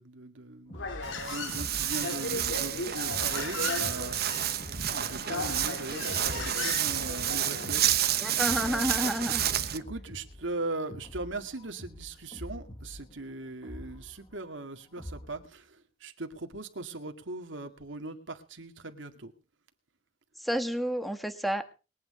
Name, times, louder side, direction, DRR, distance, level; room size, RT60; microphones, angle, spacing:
voice 1, 0.0-4.6 4.9-8.3 8.6-8.9 9.7-19.3, right 2 dB, 80° right, 6 dB, 2.1 m, -40 dB
Human voice, 0.7-7.8, left 3 dB, 75° left, 2.4 m, -37 dB
sound 1, 0.7-15.5, left 1 dB, 30° left, 1.9 m, -46 dB
Walk footsteps, 1.0-9.8, right 11 dB, 55° right, 1.2 m, -30 dB
voice 2, 8.2-9.4 20.4-21.7, equal, ahead, 9 dB, 1.7 m, -30 dB
21.5 x 9.2 x 5.0 m, 0.34 s
head